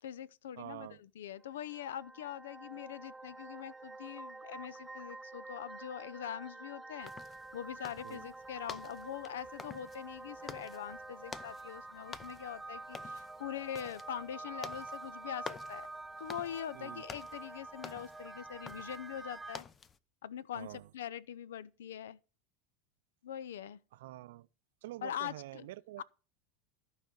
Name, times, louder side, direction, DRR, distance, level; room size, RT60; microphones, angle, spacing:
voice 1, 0.0-7.1 7.5-15.9 16.2-19.7 20.2-22.2 23.2-23.8 25.0-25.7 26.0-26.1, left 10 dB, 70° left, 0.5 m, -43 dB
voice 2, 0.6-1.0 8.0-8.3 16.7-17.0 20.5-20.9 23.9-24.5 24.8-26.0, right 16 dB, 65° right, 0.5 m, -47 dB
sound 1, 1.4-19.6, right 2 dB, 10° right, 0.4 m, -48 dB
sound 2, 7.0-20.0, left 5 dB, 25° left, 0.7 m, -51 dB
14.0 x 4.9 x 6.2 m
figure-of-eight pair, 80°, 0 cm